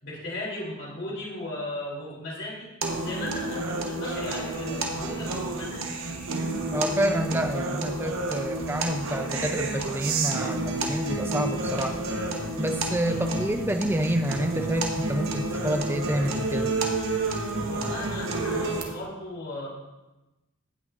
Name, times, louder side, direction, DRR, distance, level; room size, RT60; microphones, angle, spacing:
voice 1, 0.0-2.7 3.0-6.0 13.1-13.5 17.6-19.7, left 1 dB, 55° left, -5 dB, 3.5 m, -36 dB
sound 1, 2.8-18.8, right 2 dB, 65° right, 1.2 m, -30 dB
voice 2, 6.7-12.0 12.6-16.7, right 1 dB, 10° right, 6 dB, 0.5 m, -28 dB
17.5 x 6.2 x 2.6 m, 1.0 s
head